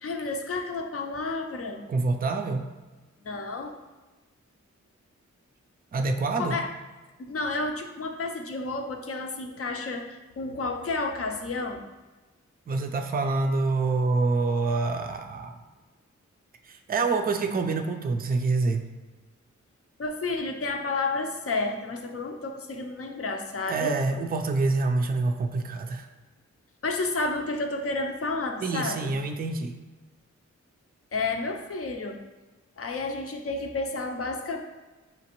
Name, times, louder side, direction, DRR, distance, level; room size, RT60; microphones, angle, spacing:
voice 1, 0.0-1.8 3.2-3.8 6.4-6.7 7.2-11.8 20.0-23.9 26.8-29.2 31.1-32.2 32.8-34.6, left 3 dB, 50° left, 4 dB, 0.6 m, -31 dB
voice 2, 1.9-2.6 5.9-6.6 12.7-15.5 16.7-18.8 23.7-26.1 28.6-29.8, right 3 dB, 30° right, 5 dB, 0.4 m, -26 dB
5.0 x 2.8 x 2.9 m, 1.2 s
cardioid pair, 55°, 30 cm